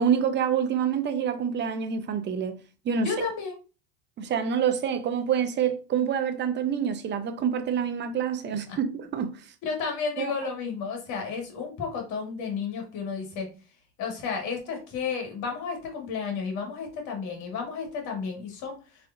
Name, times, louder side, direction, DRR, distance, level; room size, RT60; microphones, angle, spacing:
voice 1, 0.0-2.6 2.8-3.1 4.2-9.3 10.2-10.3, right 7 dB, 35° right, 0.6 m, -27 dB
voice 2, 3.0-3.6 9.6-13.5 14.0-18.8, left 5 dB, 60° left, 1.7 m, -32 dB
3.6 x 3.2 x 2.6 m
supercardioid pair, 105°, 33 cm